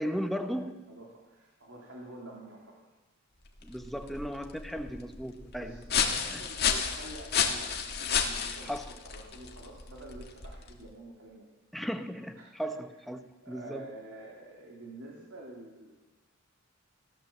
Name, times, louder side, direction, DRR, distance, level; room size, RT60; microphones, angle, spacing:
voice 1, 0.0-0.9 3.6-5.8 6.3-6.4 8.6-8.9 11.7-14.0, equal, ahead, 7 dB, 0.9 m, -36 dB
voice 2, 0.9-2.8 4.0-4.2 5.6-11.5 12.4-12.7 13.1-15.9, right 1 dB, 70° right, -2 dB, 3.0 m, -48 dB
sound 1, 3.5-10.9, left 7 dB, 50° left, 1.7 m, -32 dB
16.5 x 12.0 x 7.3 m, 1.1 s
head